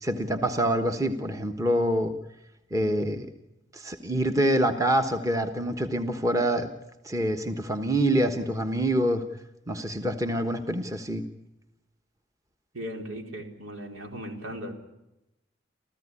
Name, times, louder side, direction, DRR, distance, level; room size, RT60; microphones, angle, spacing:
voice 1, 0.0-2.1 2.7-3.3 3.7-6.7 7.0-9.2 9.7-11.2, right 1 dB, 15° right, 6 dB, 1.2 m, -26 dB
voice 2, 12.7-14.7, equal, 85° right, 3 dB, 4.2 m, -37 dB
29.0 x 14.5 x 9.9 m, 0.91 s
head